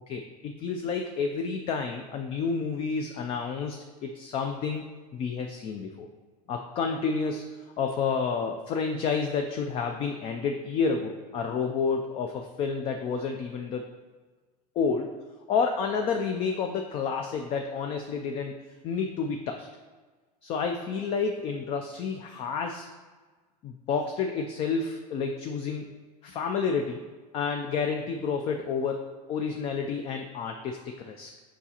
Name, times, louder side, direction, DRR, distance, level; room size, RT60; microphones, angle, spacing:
voice 1, 0.1-6.1 6.5-13.8 14.8-15.1 15.5-18.6 18.8-19.7 20.4-22.9 23.6-25.9 26.2-27.1 27.3-31.3, left 5 dB, 25° left, 4 dB, 0.3 m, -30 dB
7.1 x 4.9 x 2.8 m, 1.3 s
supercardioid pair, 145°, 21 cm